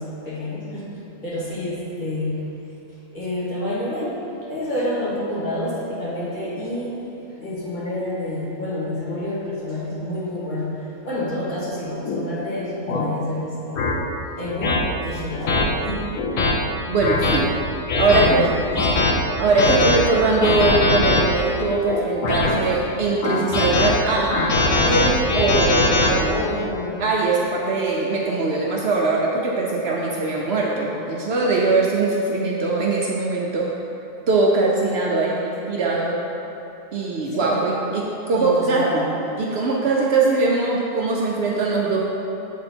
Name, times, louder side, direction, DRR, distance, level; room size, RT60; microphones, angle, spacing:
voice 1, 0.0-2.5 3.1-4.2 4.5-7.0 7.4-13.9 14.4-16.1 18.1-19.1 26.3-27.1 37.3-37.7 38.3-39.1, left 1 dB, 40° left, -8 dB, 1.4 m, -28 dB
sound 1, 12.1-12.2 12.9-13.1 13.8-13.9 14.6-14.8 15.5-15.6 16.2-16.5 17.0-17.4 17.9-18.3 18.7-19.1 19.6-20.0 20.4-21.2 21.9-22.6 23.2-23.9 24.3-26.1, left 3 dB, 90° left, 1.1 m, -20 dB
voice 2, 16.9-17.5 18.0-18.4 19.4-24.5 24.9-26.4 27.0-33.7 34.3-36.2 36.9-39.1 39.4-42.1, right 3 dB, 65° right, -3 dB, 0.8 m, -21 dB
7.6 x 3.5 x 4.2 m, 3.0 s
omnidirectional pair, 1.3 m